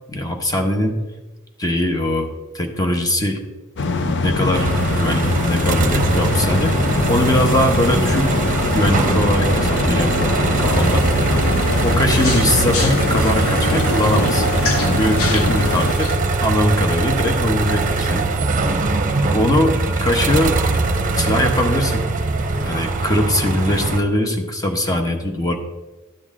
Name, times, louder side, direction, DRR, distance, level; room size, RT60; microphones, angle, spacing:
voice 1, 0.1-1.0 1.6-3.4 4.0-8.3 8.7-11.1 11.8-14.5 14.8-16.1 16.4-18.3 19.3-20.6 21.2-22.0 22.6-25.6, left 1 dB, 15° left, 4 dB, 1.0 m, -21 dB
sound 1, 3.8-15.9, left 3 dB, 55° left, 0.7 m, -22 dB
sound 2, 4.5-24.0, right 3 dB, 35° right, 0.8 m, -21 dB
sound 3, 10.6-16.2, left 3 dB, 75° left, 1.2 m, -29 dB
11.5 x 7.9 x 3.7 m, 1.2 s
head